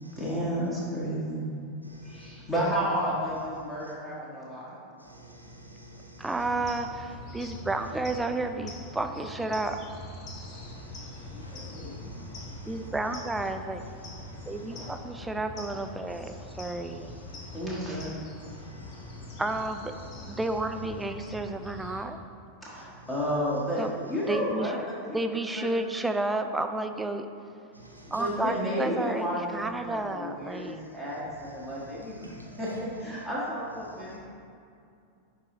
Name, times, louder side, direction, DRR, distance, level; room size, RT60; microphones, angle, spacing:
voice 1, 0.2-1.5 2.0-4.8 11.3-12.1 14.7-14.9 17.5-18.2 22.6-23.8 24.1-25.2 25.6-25.7 28.1-34.2, equal, 15° left, -7 dB, 1.4 m, -32 dB
voice 2, 1.8-2.3 5.0-6.2 6.6-6.7 10.4-12.8 14.2-14.6 17.4-17.6 18.5-19.4 27.7-28.2 32.2-32.6 34.1-34.2, right 1 dB, 85° right, -1 dB, 0.8 m, -49 dB
voice 3, 6.2-9.8 12.7-13.8 14.5-17.1 19.4-19.9 20.3-22.2 23.8-24.7 25.1-27.3 28.1-29.2 29.5-30.8, right 2 dB, 10° right, 7 dB, 0.4 m, -31 dB
sound 1, 6.4-22.1, left 2 dB, 35° left, 0.8 m, -43 dB
10.0 x 3.8 x 3.0 m, 2.5 s
figure-of-eight pair, 90°, 0 cm